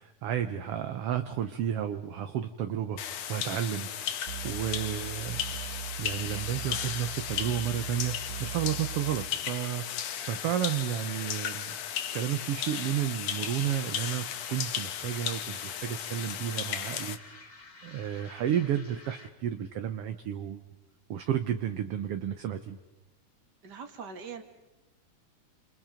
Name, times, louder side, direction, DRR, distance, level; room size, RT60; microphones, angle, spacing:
voice 1, 0.0-3.0 3.3-11.8 12.1-17.2 17.4-17.5 17.8-20.6 21.1-22.8, right 10 dB, 65° right, 8 dB, 1.7 m, -32 dB
sound 1, 3.0-17.2, left 9 dB, 65° left, 2.3 m, -35 dB
sound 2, 4.3-9.3, right 11 dB, 80° right, 2.7 m, -40 dB
sound 3, 13.7-19.5, left 3 dB, 25° left, 1.4 m, -50 dB
voice 2, 23.6-24.4, right 5 dB, 35° right, 6 dB, 2.4 m, -42 dB
29.0 x 28.5 x 5.2 m, 1.0 s
omnidirectional pair, 3.4 m